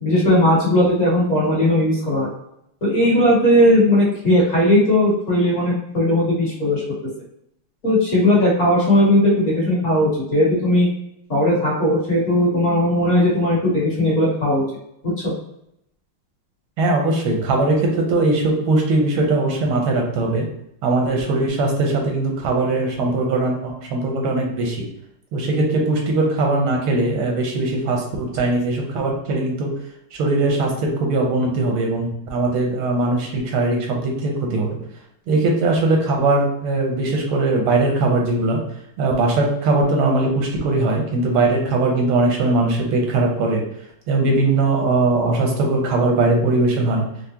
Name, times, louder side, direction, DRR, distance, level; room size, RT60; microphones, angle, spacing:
voice 1, 0.0-2.3 2.8-6.8 7.8-10.9 11.3-14.6 15.0-15.3, left 1 dB, 45° left, -7 dB, 1.5 m, -17 dB
voice 2, 16.8-20.4 20.8-24.9 25.3-29.7 30.1-34.8 35.3-38.6 39.0-43.6 44.1-47.0, right 2 dB, 85° right, 1 dB, 1.6 m, -20 dB
4.7 x 2.0 x 2.8 m, 0.77 s
omnidirectional pair, 2.3 m